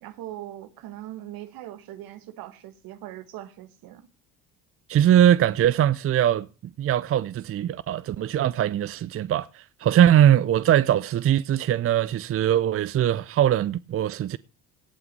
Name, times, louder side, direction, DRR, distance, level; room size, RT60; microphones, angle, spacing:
voice 1, 0.0-4.1, right 13 dB, 70° right, 1.4 m, -40 dB
voice 2, 4.9-6.5 6.8-14.4, right 11 dB, 40° right, 0.5 m, -21 dB
17.5 x 5.9 x 5.3 m
hypercardioid pair, 65°, 37 cm